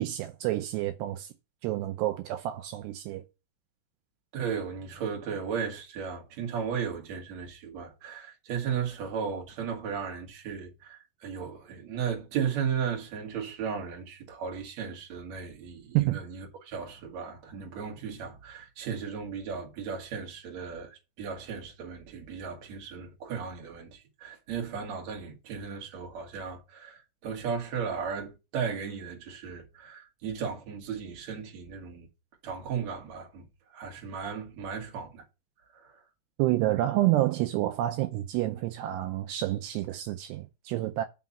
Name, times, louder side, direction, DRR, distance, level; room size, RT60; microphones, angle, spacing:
voice 1, 0.0-1.3 1.6-3.2 15.9-16.2 36.4-41.0, right 15 dB, 85° right, 2.4 m, -28 dB
voice 2, 4.3-32.1 32.4-33.4 33.7-35.2 35.7-36.0, right 7 dB, 45° right, 2.5 m, -35 dB
6.0 x 5.8 x 7.2 m
omnidirectional pair, 5.6 m